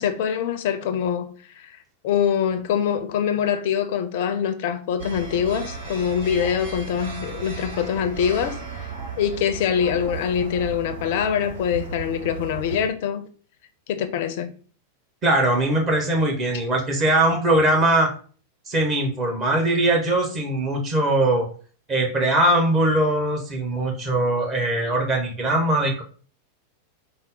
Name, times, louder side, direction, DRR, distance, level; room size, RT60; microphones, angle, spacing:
voice 1, 0.0-1.8 2.0-8.9 9.2-13.3 13.9-14.5, left 8 dB, 50° left, 0.4 m, -24 dB
sound 1, 5.0-12.9, right 5 dB, 70° right, 1.1 m, -35 dB
voice 2, 15.2-18.1 18.7-21.5 21.9-26.0, right 1 dB, 30° right, 1.0 m, -21 dB
3.8 x 2.0 x 3.9 m
figure-of-eight pair, 90°, 0 cm